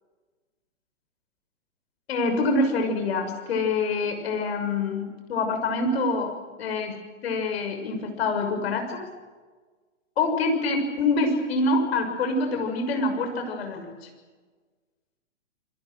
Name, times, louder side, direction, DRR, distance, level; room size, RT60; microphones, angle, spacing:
voice 1, 2.1-6.3 6.6-7.0 7.2-9.1 10.2-14.1, left 3 dB, 55° left, 5 dB, 6.5 m, -26 dB
28.5 x 22.5 x 6.5 m, 1.4 s
figure-of-eight pair, 120°, 37 cm